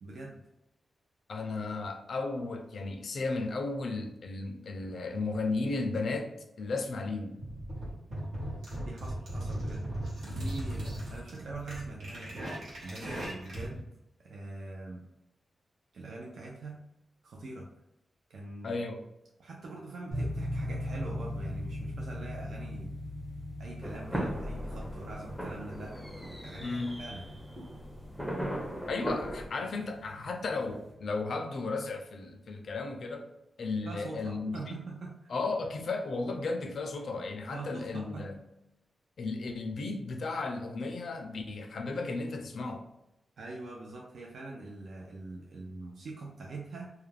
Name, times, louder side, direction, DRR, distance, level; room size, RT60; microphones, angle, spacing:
voice 1, 0.0-0.4 8.8-9.8 10.2-13.9 14.2-15.0 15.9-16.8 17.2-17.7 18.3-18.8 19.4-23.0 23.6-27.3 33.9-35.3 37.5-38.3 43.4-46.9, right 2 dB, 75° right, -2 dB, 0.4 m, -43 dB
voice 2, 1.3-6.3 6.6-7.4 18.6-19.1 26.6-27.0 28.9-33.3 33.6-34.8 35.3-38.4 39.2-42.9, left 3 dB, 65° left, 4 dB, 0.4 m, -34 dB
sound 1, 7.4-13.8, right 1 dB, 90° right, 1.0 m, -37 dB
sound 2, 20.1-30.9, left 1 dB, 30° right, 1.2 m, -40 dB
sound 3, 23.8-29.5, equal, 5° right, 0.5 m, -38 dB
2.3 x 2.1 x 3.1 m, 0.89 s
wide cardioid pair, 130°, 0 cm